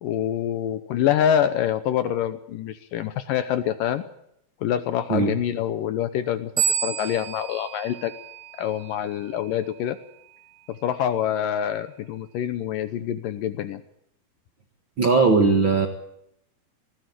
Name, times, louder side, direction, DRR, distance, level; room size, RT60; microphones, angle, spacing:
voice 1, 0.0-4.0 4.6-6.5 6.8-8.1 8.6-10.0 10.7-13.8, left 10 dB, 70° left, 11 dB, 2.2 m, -26 dB
sound 1, 6.6-9.1, right 7 dB, 80° right, 4.1 m, -29 dB
voice 2, 15.0-15.9, right 4 dB, 50° right, 4 dB, 1.6 m, -18 dB
19.5 x 15.0 x 9.2 m, 0.75 s
omnidirectional pair, 4.6 m